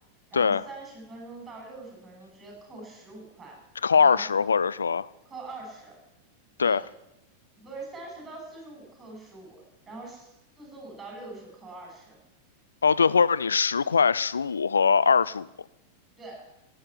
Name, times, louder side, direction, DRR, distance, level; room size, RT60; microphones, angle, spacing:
voice 1, 0.3-3.6 3.9-4.2 5.3-6.0 6.6-6.8 7.6-12.2 16.2-16.5, right 2 dB, 15° right, 6.9 m, -43 dB
voice 2, 3.8-5.1 6.6-6.8 12.8-15.5, left 5 dB, 75° left, 0.5 m, -22 dB
15.0 x 8.8 x 9.6 m
figure-of-eight pair, 90°, 0 cm